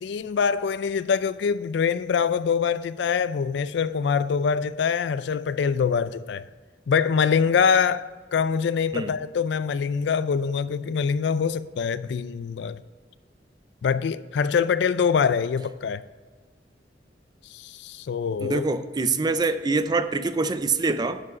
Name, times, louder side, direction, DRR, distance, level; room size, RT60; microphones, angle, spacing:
voice 1, 0.0-6.5 6.9-12.8 13.8-16.0 17.5-18.7, left 6 dB, 65° left, 0.3 m, -24 dB
voice 2, 18.4-21.2, right 3 dB, 25° right, 0.4 m, -25 dB
11.0 x 4.8 x 5.9 m
head